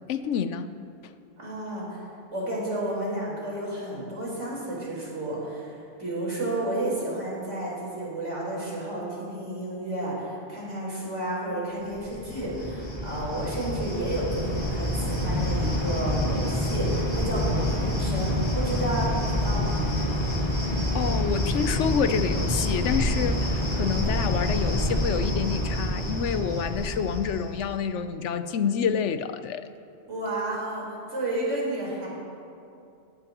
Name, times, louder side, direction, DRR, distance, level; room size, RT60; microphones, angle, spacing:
voice 1, 0.1-0.7 20.9-29.6, left 7 dB, 85° left, 11 dB, 1.0 m, -28 dB
voice 2, 1.4-2.0 2.3-19.8 30.1-32.1, right 1 dB, 90° right, -6 dB, 4.6 m, -31 dB
Cricket, 11.9-27.6, left 1 dB, 30° left, 3.7 m, -27 dB
17.0 x 16.0 x 3.0 m, 2.6 s
omnidirectional pair, 1.2 m